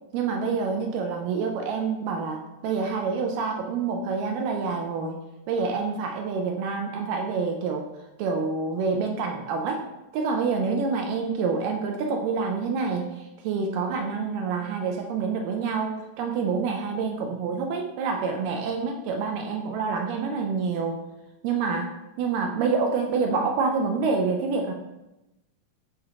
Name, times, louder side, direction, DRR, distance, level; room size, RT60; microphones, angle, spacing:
voice 1, 0.1-5.2 5.5-7.9 8.2-9.9 10.1-21.0 21.4-21.9 22.2-24.7, right 5 dB, 80° right, 3 dB, 2.1 m, -27 dB
9.5 x 3.5 x 3.6 m, 0.97 s
omnidirectional pair, 4.2 m